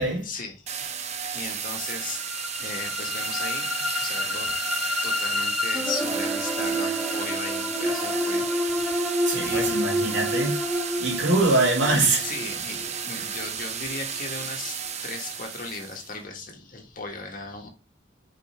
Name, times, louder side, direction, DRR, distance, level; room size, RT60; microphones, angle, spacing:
voice 1, 0.0-2.2 2.6-3.7 4.0-8.9 9.4-9.8 10.2-10.3 12.2-17.7, left 3 dB, 45° left, 1.6 m, -37 dB
sound 1, 0.7-16.1, right 7 dB, 35° right, 0.6 m, -33 dB
sound 2, 1.9-13.9, left 1 dB, ahead, 0.8 m, -29 dB
voice 2, 9.2-10.6 11.0-12.3, right 2 dB, 80° right, 2.5 m, -23 dB
5.4 x 4.8 x 4.4 m
head